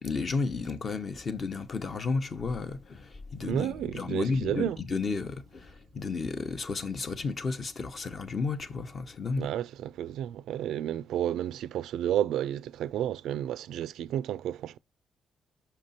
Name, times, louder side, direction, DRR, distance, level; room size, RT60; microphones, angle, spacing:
voice 1, 0.0-9.5, left 4 dB, 40° left, 0.8 m, -32 dB
voice 2, 3.4-4.8 9.4-14.8, right 11 dB, 80° right, 0.3 m, -31 dB
5.7 x 5.0 x 4.1 m
cardioid pair, 90°, 0 cm